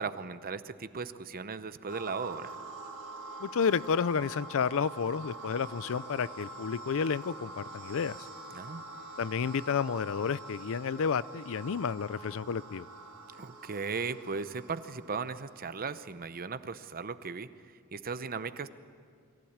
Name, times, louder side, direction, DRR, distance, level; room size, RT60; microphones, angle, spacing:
voice 1, 0.0-2.6 8.5-8.8 13.4-17.5 17.9-18.7, right 5 dB, 40° right, 12 dB, 0.8 m, -37 dB
sound 1, 1.9-16.0, right 2 dB, 70° right, 4.0 m, -46 dB
voice 2, 3.4-8.3 9.2-12.9, left 6 dB, 65° left, 18 dB, 0.5 m, -31 dB
23.0 x 15.5 x 8.8 m, 2.3 s
head